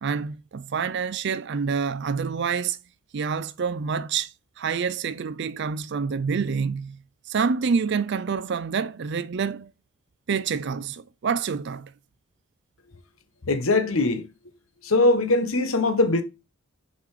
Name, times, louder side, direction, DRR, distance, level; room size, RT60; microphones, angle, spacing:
voice 1, 0.0-2.8 3.1-9.7 10.3-11.9, right 5 dB, 55° right, 0.4 m, -27 dB
voice 2, 13.5-14.3 14.8-16.2, left 2 dB, 80° left, 1.2 m, -21 dB
6.8 x 5.2 x 4.9 m
head